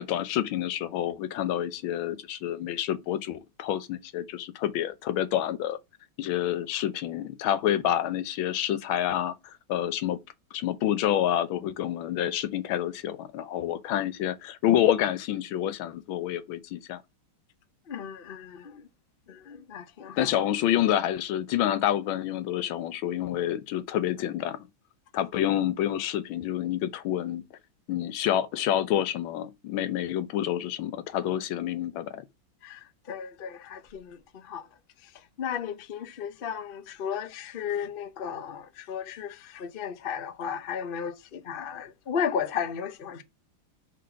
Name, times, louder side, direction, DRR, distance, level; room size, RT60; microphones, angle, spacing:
voice 1, 0.0-5.8 6.2-10.2 10.5-17.0 20.2-24.6 25.1-27.4 27.9-32.2, left 11 dB, 85° left, 1.5 m, -28 dB
voice 2, 17.9-18.8 19.3-20.3 32.6-34.2 34.4-34.7 35.4-43.2, left 7 dB, 70° left, 0.5 m, -34 dB
4.9 x 4.0 x 5.6 m
omnidirectional pair, 2.2 m